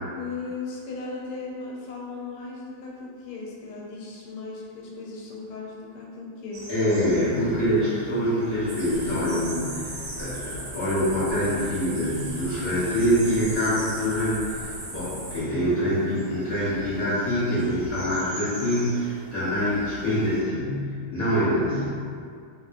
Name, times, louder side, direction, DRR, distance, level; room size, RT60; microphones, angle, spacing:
voice 1, 0.2-6.6, left 4 dB, 85° left, -3 dB, 1.6 m, -37 dB
sound 1, 6.5-20.4, right 1 dB, 85° right, 0.6 m, -43 dB
voice 2, 6.7-14.6 14.9-22.0, equal, 55° left, -12 dB, 1.0 m, -25 dB
sound 2, 8.7-15.4, right 1 dB, 70° right, 1.3 m, -37 dB
3.4 x 2.7 x 2.4 m, 2.2 s
omnidirectional pair, 2.4 m